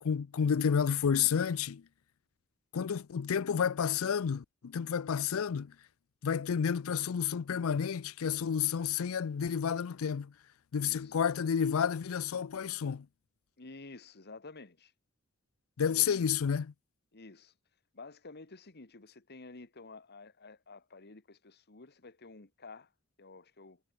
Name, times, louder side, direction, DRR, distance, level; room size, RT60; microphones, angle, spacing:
voice 1, 0.0-1.9 2.7-5.7 6.2-10.3 10.7-13.1 15.8-16.7, left 7 dB, 70° left, 0.4 m, -30 dB
voice 2, 10.8-11.1 13.6-14.9 15.9-16.1 17.1-17.5 17.9-22.9 23.2-23.8, left 3 dB, 50° left, 1.6 m, -51 dB
head